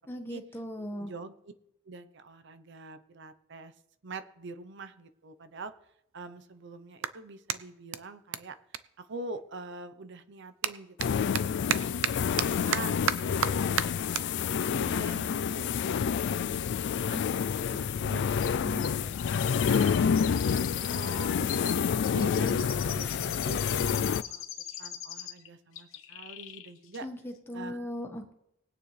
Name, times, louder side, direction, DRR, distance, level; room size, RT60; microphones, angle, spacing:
voice 1, 0.1-1.1 18.6-18.9 27.0-28.3, equal, 10° left, 3 dB, 1.4 m, -38 dB
voice 2, 0.8-1.3 1.8-3.7 4.0-5.7 6.1-8.6 9.0-11.3 11.9-12.9 13.3-16.7 17.0-17.2 17.7-18.6 19.0-19.4 19.7-21.7 22.1-24.5 24.8-27.1 27.5-27.9, right 3 dB, 60° right, 11 dB, 0.8 m, -44 dB
Clapping, 4.9-5.0 5.6-9.7 10.0-16.6, right 9 dB, 85° right, 0.6 m, -36 dB
sound 1, 11.0-24.2, left 7 dB, 60° left, 0.3 m, -28 dB
Chirp tweet, 18.4-25.5 25.7-26.7 26.9-27.0, left 10 dB, 85° left, 1.1 m, -42 dB
20.0 x 9.2 x 3.3 m, 0.80 s
head